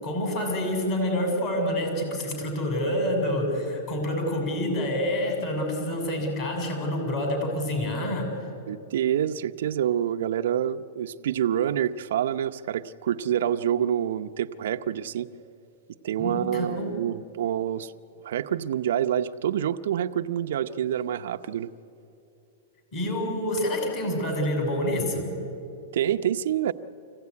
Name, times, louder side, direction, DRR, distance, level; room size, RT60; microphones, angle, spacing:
voice 1, 0.0-8.5 16.2-17.1 22.9-25.3, left 1 dB, 35° left, 2 dB, 7.1 m, -27 dB
voice 2, 8.7-15.3 16.0-17.9 18.2-21.7 25.9-26.7, right 10 dB, 75° right, 8 dB, 0.7 m, -27 dB
25.5 x 16.5 x 9.7 m, 2.7 s
supercardioid pair, 145°, 0 cm